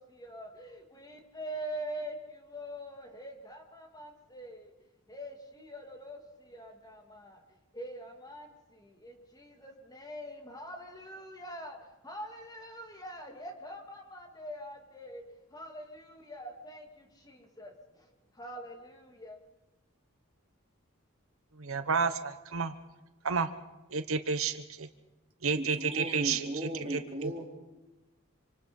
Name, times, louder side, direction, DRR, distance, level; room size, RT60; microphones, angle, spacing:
voice 1, 0.0-4.7 5.1-7.4 7.7-18.1 18.3-19.4, equal, 20° left, 2.6 m, -44 dB
voice 2, 21.6-22.7 23.2-23.5 23.9-24.9 25.4-27.3, right 5 dB, 80° right, 1.1 m, -31 dB
voice 3, 25.5-27.4, right 1 dB, 30° right, 4.5 m, -37 dB
27.0 x 26.0 x 5.4 m
head